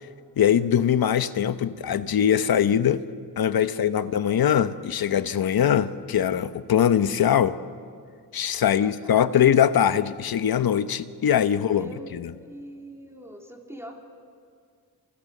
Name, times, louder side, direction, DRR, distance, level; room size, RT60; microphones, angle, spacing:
voice 1, 0.4-3.0 3.4-7.5 8.3-12.3, left 9 dB, 65° left, 12 dB, 1.1 m, -22 dB
voice 2, 3.6-4.2 8.6-9.2 10.9-11.1 11.5-14.0, right 1 dB, 5° right, 1 dB, 3.8 m, -44 dB
28.5 x 27.5 x 6.8 m, 2.2 s
cardioid pair, 95°, 38 cm